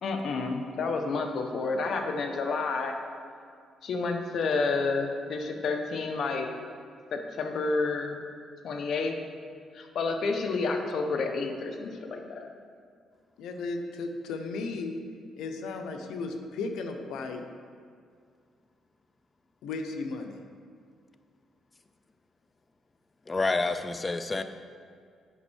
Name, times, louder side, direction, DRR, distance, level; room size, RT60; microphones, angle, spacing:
voice 1, 0.0-2.9 3.8-6.5 7.1-8.2 8.6-9.2 9.7-12.5, left 3 dB, 60° left, 4 dB, 1.1 m, -30 dB
voice 2, 13.4-14.9 15.4-17.4 19.6-20.4, left 3 dB, 85° left, 5 dB, 0.9 m, -35 dB
voice 3, 23.3-24.4, left 3 dB, 25° left, 9 dB, 0.5 m, -28 dB
9.3 x 5.4 x 6.4 m, 2.2 s
cardioid pair, 90°, 0 cm